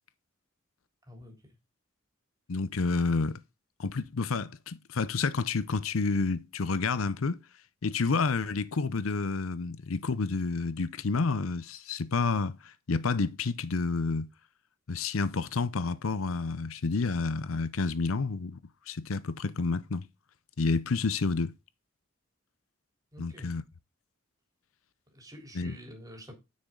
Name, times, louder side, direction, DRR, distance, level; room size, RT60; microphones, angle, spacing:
voice 1, 1.0-1.6 23.1-23.5 25.1-26.3, equal, 20° right, 3.6 m, -48 dB
voice 2, 2.5-3.4 3.8-7.4 7.8-14.3 14.9-18.6 18.9-20.1 20.6-21.5 23.2-23.6 25.5-25.7, left 4 dB, 85° left, 0.7 m, -29 dB
9.8 x 6.3 x 3.8 m
head